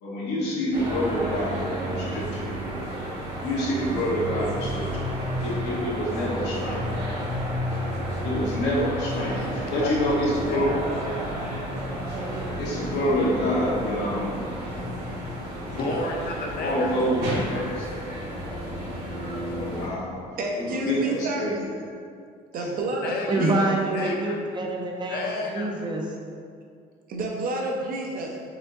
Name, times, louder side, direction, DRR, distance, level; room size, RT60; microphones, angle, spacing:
voice 1, 0.0-2.4 3.4-5.0 5.4-6.9 8.2-10.7 12.6-14.4 16.6-18.2 19.5-20.1 20.5-21.6 21.9-22.0 22.6-22.7, equal, 90° left, -6 dB, 1.2 m, -27 dB
sound 1, 0.7-19.9, equal, 75° right, 1.4 m, -31 dB
voice 2, 9.2-9.9 10.5-10.8 15.3-16.9 23.0-23.5 23.9-24.4 25.1-25.7, left 3 dB, 65° left, 0 dB, 0.7 m, -32 dB
voice 3, 20.4-21.5 22.5-23.5 27.1-28.4, right 1 dB, 60° right, 0 dB, 0.8 m, -29 dB
voice 4, 23.3-26.2, right 2 dB, 25° right, 0 dB, 0.6 m, -26 dB
5.0 x 3.5 x 2.6 m, 2.2 s
cardioid pair, 110°, 17 cm